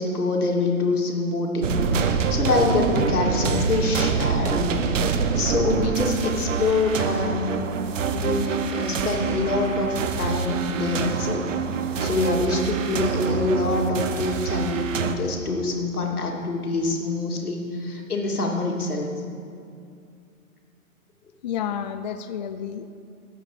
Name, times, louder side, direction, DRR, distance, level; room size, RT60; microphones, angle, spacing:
voice 1, 0.0-5.1 5.3-7.6 8.1-11.5 12.0-19.1, left 3 dB, 90° left, 0 dB, 3.0 m, -25 dB
sound 1, 1.6-15.1, right 6 dB, 60° right, 1.2 m, -26 dB
voice 2, 21.4-22.9, left 8 dB, 30° left, 9 dB, 0.5 m, -30 dB
19.0 x 8.6 x 5.1 m, 2.4 s
hypercardioid pair, 140°, 43 cm